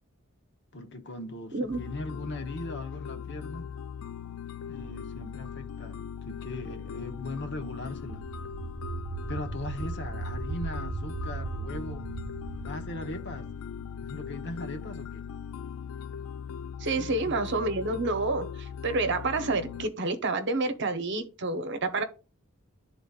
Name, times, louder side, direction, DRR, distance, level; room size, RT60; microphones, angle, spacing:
voice 1, 0.7-3.7 4.7-8.2 9.3-12.1 12.6-13.5 14.0-15.3 17.0-17.4, left 2 dB, 55° left, 0.9 m, -39 dB
sound 1, 1.7-19.9, left 7 dB, 80° left, 0.4 m, -40 dB
sound 2, 7.6-14.2, right 4 dB, 85° right, 0.8 m, -38 dB
voice 2, 16.8-22.0, right 3 dB, 55° right, 0.9 m, -29 dB
11.5 x 4.0 x 2.4 m
head